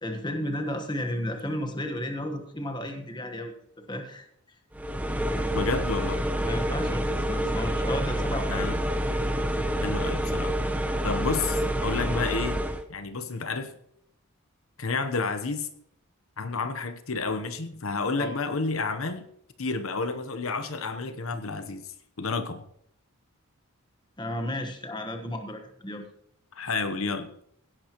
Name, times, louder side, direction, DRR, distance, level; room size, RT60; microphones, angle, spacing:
voice 1, 0.0-4.2 6.4-8.6 12.0-12.2 18.1-18.4 24.2-26.0, left 1 dB, 20° left, 5 dB, 1.3 m, -33 dB
sound 1, 4.7-12.8, equal, 5° right, 0.8 m, -28 dB
voice 2, 5.5-6.2 8.5-8.8 9.8-10.5 11.0-12.6 12.9-13.7 14.8-15.7 16.4-19.3 19.6-22.6 26.5-27.3, left 4 dB, 70° left, 9 dB, 0.9 m, -30 dB
16.5 x 11.0 x 3.0 m, 0.73 s
head